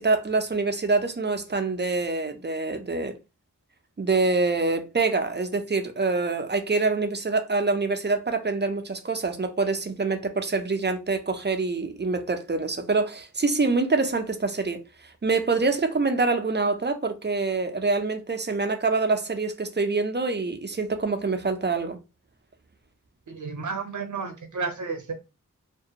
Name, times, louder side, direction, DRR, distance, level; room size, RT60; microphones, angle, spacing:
voice 1, 0.0-3.1 4.0-22.0, right 3 dB, 35° right, 0.5 m, -25 dB
voice 2, 23.3-25.1, right 4 dB, 65° right, 0.7 m, -32 dB
2.5 x 2.2 x 2.7 m
wide cardioid pair, 45°, 33 cm